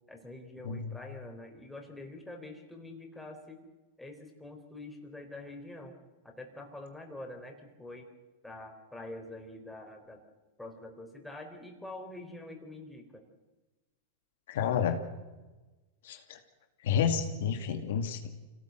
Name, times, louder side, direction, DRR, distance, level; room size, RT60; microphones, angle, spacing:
voice 1, 0.1-3.6 4.0-5.9 6.2-8.1 8.4-10.2 10.6-13.2, left 2 dB, 5° left, 2 dB, 4.4 m, -45 dB
voice 2, 0.6-1.0 14.5-15.0 16.0-16.4 16.8-18.3, left 7 dB, 70° left, 5 dB, 2.4 m, -30 dB
25.5 x 17.5 x 7.9 m, 1.2 s
hypercardioid pair, 130°, 0 cm